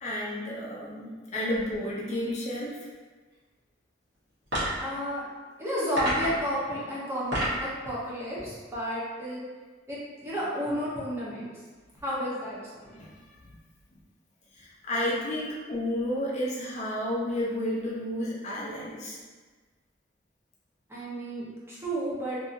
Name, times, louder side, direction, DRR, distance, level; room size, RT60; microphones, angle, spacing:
voice 1, 0.0-2.9 12.9-13.1 13.4-13.5 14.5-19.2, left 1 dB, 40° left, -5 dB, 0.5 m, -31 dB
sound 1, 4.4-4.9 6.0-6.5 7.1-7.7, equal, 70° right, 1.1 m, -28 dB
voice 2, 4.8-5.2 5.6-7.3 7.6-9.4 9.9-11.5 12.0-13.0 20.9-22.4, equal, 15° right, -8 dB, 0.7 m, -32 dB
2.7 x 2.6 x 2.5 m, 1.4 s
head